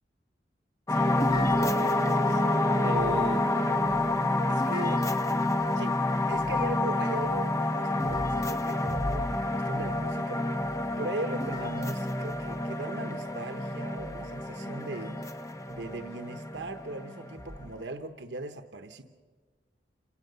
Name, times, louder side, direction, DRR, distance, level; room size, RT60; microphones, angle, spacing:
sound 1, 0.9-17.8, left 2 dB, 20° left, 0.9 m, -28 dB
voice 1, 0.9-3.5 4.5-5.0 5.8-6.0 6.3-10.7 11.0-15.2 15.7-19.0, right 2 dB, 85° right, 6 dB, 0.9 m, -38 dB
Wind instrument woodwind instrument, 1.4-4.4, right 2 dB, 15° right, 1.0 m, -35 dB
28.0 x 17.0 x 6.8 m, 1.5 s
head